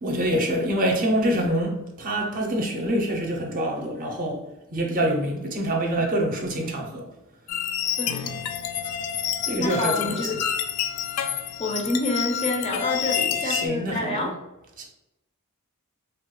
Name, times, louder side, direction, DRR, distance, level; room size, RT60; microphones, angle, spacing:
voice 1, 0.0-4.4 4.7-7.1 9.5-10.4 13.4-14.3 14.8-14.9, right 1 dB, 40° right, 2 dB, 0.6 m, -26 dB
sound 1, 7.5-13.7, left 9 dB, 90° left, 0.3 m, -28 dB
voice 2, 8.0-8.3 9.6-10.4 11.6-14.4, left 1 dB, 30° left, 1 dB, 0.4 m, -28 dB
3.3 x 2.2 x 3.0 m, 0.93 s
head